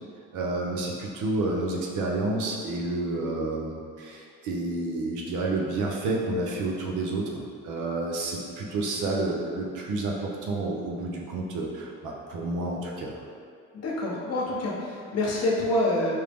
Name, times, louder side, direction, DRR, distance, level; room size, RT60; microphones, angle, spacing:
voice 1, 0.3-7.3 7.6-13.1, right 2 dB, 80° right, -1 dB, 0.7 m, -30 dB
voice 2, 13.7-16.1, left 1 dB, 55° left, -3 dB, 0.8 m, -27 dB
4.5 x 2.0 x 3.4 m, 2.3 s
cardioid pair, 90°, 30 cm